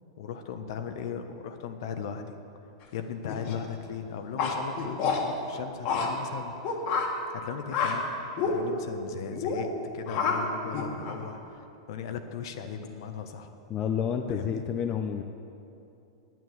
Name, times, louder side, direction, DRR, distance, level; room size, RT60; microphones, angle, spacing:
voice 1, 0.2-2.4 2.9-6.8 7.3-9.7 9.9-13.5 14.3-14.6, left 7 dB, 65° left, 7 dB, 1.2 m, -38 dB
sound 1, 3.3-3.5 4.4-5.2 5.8-6.1 6.6-7.1 7.7-7.9 8.4-8.5 9.3-9.6 10.1-10.4 10.7-11.2, left 6 dB, 50° left, 2.0 m, -28 dB
voice 2, 13.7-15.2, left 7 dB, 30° left, 5 dB, 0.7 m, -29 dB
9.4 x 8.7 x 9.5 m, 2.7 s
hypercardioid pair, 130°, 3 cm